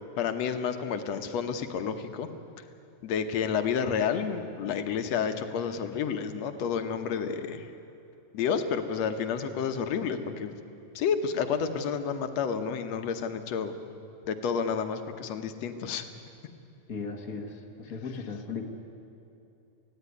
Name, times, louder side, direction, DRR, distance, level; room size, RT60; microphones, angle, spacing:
voice 1, 0.2-2.3 3.0-7.7 8.3-10.6 11.0-13.7 14.3-16.1, left 7 dB, 70° left, 7 dB, 2.2 m, -30 dB
voice 2, 16.9-18.6, left 4 dB, 35° left, 3 dB, 1.8 m, -37 dB
18.5 x 16.0 x 9.4 m, 2.8 s
omnidirectional pair, 3.3 m